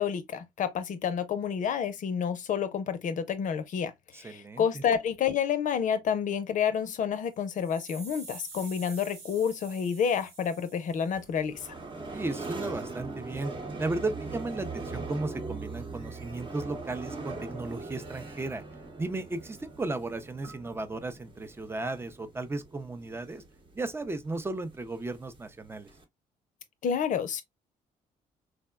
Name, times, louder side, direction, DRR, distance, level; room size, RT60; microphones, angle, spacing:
voice 1, 0.0-3.9 4.2-11.5 26.8-27.4, left 7 dB, 55° left, 0.6 m, -29 dB
voice 2, 4.1-4.8 12.1-13.5 13.8-18.6 19.0-23.4 23.8-25.9, right 2 dB, 15° right, 0.5 m, -35 dB
sound 1, 7.2-11.4, right 3 dB, 75° right, 1.2 m, -48 dB
sound 2, 11.1-26.0, right 3 dB, 35° right, 0.9 m, -41 dB
3.6 x 2.1 x 2.2 m
cardioid pair, 80°, 15 cm